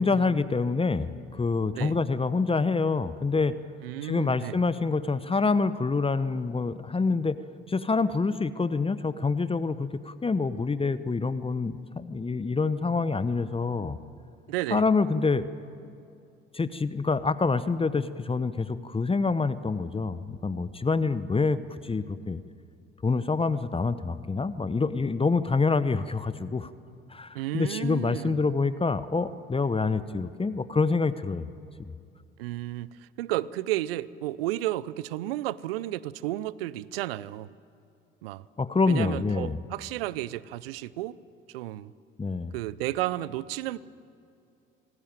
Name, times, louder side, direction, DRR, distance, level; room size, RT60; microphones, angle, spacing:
voice 1, 0.0-3.5 4.0-7.4 7.7-14.0 14.7-15.5 16.5-22.4 23.0-26.7 27.1-31.5 38.6-39.6 42.2-42.5, left 4 dB, 20° left, 14 dB, 1.0 m, -26 dB
voice 2, 3.8-4.6 14.5-14.9 27.3-28.4 32.4-37.5 38.2-38.5 38.9-41.2 41.5-41.9 42.5-43.8, right 15 dB, 75° right, 20 dB, 0.6 m, -32 dB
26.5 x 19.0 x 9.0 m, 2.5 s
hypercardioid pair, 55°, 29 cm